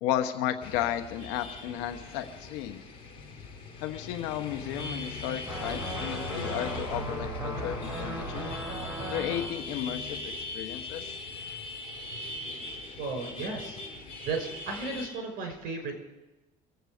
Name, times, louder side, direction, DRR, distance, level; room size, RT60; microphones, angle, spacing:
voice 1, 0.0-2.8 3.8-8.5 9.1-11.1, left 11 dB, 90° left, 6 dB, 1.1 m, -33 dB
sound 1, 0.6-15.1, left 3 dB, 35° left, 6.9 m, -40 dB
sound 2, 5.5-9.5, right 1 dB, 20° right, 5.8 m, -36 dB
voice 2, 13.0-13.8 14.2-16.0, right 3 dB, 60° right, 5 dB, 5.2 m, -34 dB
24.5 x 8.2 x 6.5 m, 1.0 s
cardioid pair, 130°, 17 cm